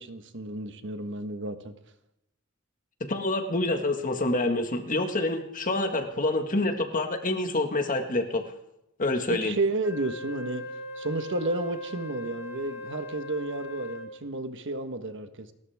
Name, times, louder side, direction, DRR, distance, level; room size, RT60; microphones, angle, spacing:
voice 1, 0.0-1.7 9.3-10.6 11.0-15.5, right 2 dB, 60° right, 8 dB, 1.3 m, -31 dB
voice 2, 3.1-8.4 9.0-9.5, left 2 dB, 40° left, 5 dB, 1.8 m, -27 dB
Wind instrument woodwind instrument, 9.8-14.2, equal, 15° right, 3.1 m, -40 dB
29.0 x 13.5 x 3.6 m, 0.85 s
head